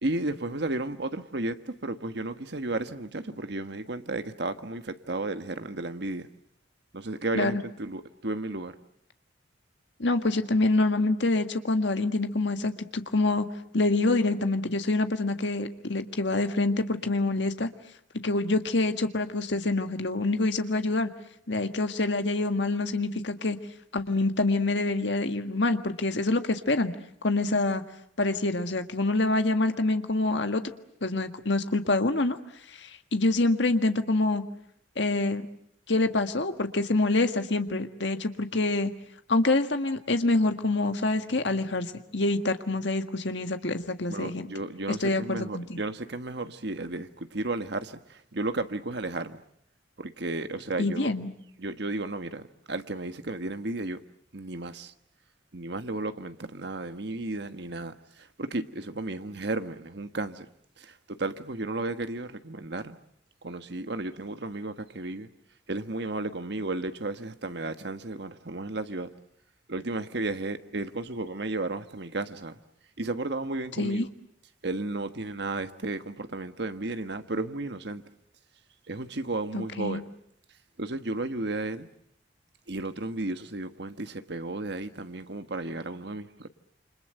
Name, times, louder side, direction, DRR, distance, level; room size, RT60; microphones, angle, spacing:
voice 1, 0.0-6.3 6.9-8.8 44.1-49.4 50.0-51.1 51.6-54.0 54.3-54.9 55.5-60.5 60.8-63.0 63.4-65.3 65.7-69.1 69.7-72.6 73.0-74.1 74.6-78.0 78.9-80.0 80.8-81.9 82.7-86.5, right 2 dB, 60° right, 1.4 m, -33 dB
voice 2, 10.0-13.5 13.7-17.7 18.2-21.1 21.5-23.6 23.9-26.9 27.2-27.8 28.2-30.6 31.0-32.4 32.7-34.4 35.0-35.5 35.9-38.9 39.3-44.5 45.0-45.8 50.8-51.3 73.8-74.1 79.5-80.0, left 2 dB, 70° left, 1.8 m, -26 dB
28.5 x 26.0 x 7.9 m
head